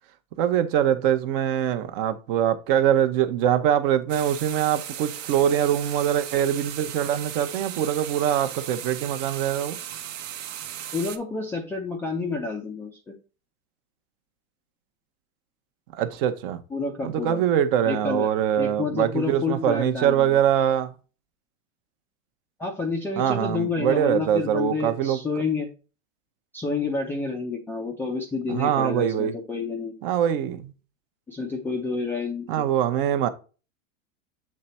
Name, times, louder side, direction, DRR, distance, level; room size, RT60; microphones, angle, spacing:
voice 1, 0.4-9.8 15.9-16.6 17.0-20.9 23.2-25.2 28.5-29.3 30.0-30.7 32.5-33.3, right 10 dB, 40° right, 0.8 m, -23 dB
sound 1, 4.1-11.2, right 11 dB, 60° right, 1.0 m, -37 dB
voice 2, 10.9-13.1 16.7-17.4 17.8-18.3 18.6-20.4 22.6-25.7 26.5-29.9 31.3-32.6, left 4 dB, 5° left, 0.4 m, -29 dB
7.5 x 3.3 x 4.1 m
supercardioid pair, 145°, 42 cm